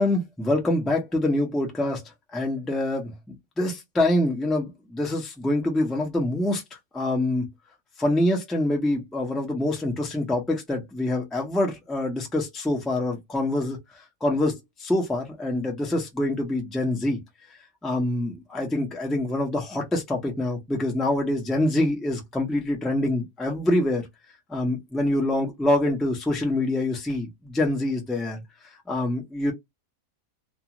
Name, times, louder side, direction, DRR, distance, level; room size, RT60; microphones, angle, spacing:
voice 1, 0.0-2.0 2.3-3.1 3.6-6.6 6.9-7.5 8.0-13.8 14.2-17.2 17.8-24.1 24.5-28.4 28.9-29.5, left 1 dB, ahead, 0.3 m, -25 dB
2.5 x 2.3 x 2.9 m
omnidirectional pair, 1.5 m